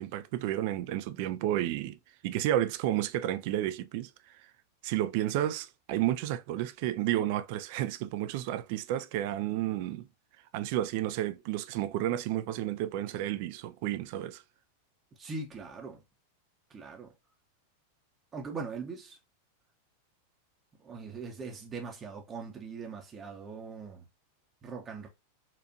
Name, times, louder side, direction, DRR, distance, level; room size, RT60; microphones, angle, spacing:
voice 1, 0.0-4.1 4.4-4.5 4.8-10.1 10.5-14.4, right 13 dB, 45° right, 0.4 m, -31 dB
voice 2, 15.2-16.0 16.7-17.1 18.3-19.2 20.8-24.0 24.6-25.1, right 4 dB, 20° right, 0.8 m, -41 dB
4.3 x 2.5 x 2.6 m
figure-of-eight pair, 90°, 0 cm